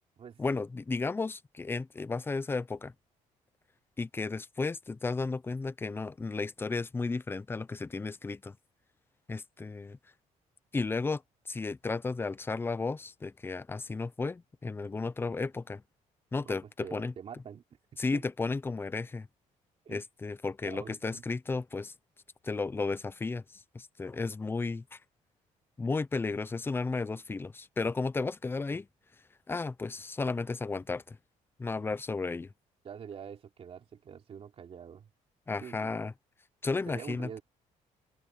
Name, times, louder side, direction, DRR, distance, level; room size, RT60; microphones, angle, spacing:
voice 1, 0.4-2.9 4.0-8.5 9.3-10.0 10.7-15.8 16.3-17.1 18.0-19.3 19.9-21.9 22.4-25.0 25.8-28.9 29.5-31.2 31.6-32.5 35.5-36.1 36.6-37.3, left 3 dB, 15° left, 0.6 m, -34 dB
voice 2, 16.4-17.8 18.1-18.2 19.8-20.0 20.6-21.2 32.3-32.4 32.8-35.1 35.6-36.0 36.9-37.4, right 7 dB, 45° right, 3.3 m, -46 dB
open air
cardioid pair, 130°, 14 cm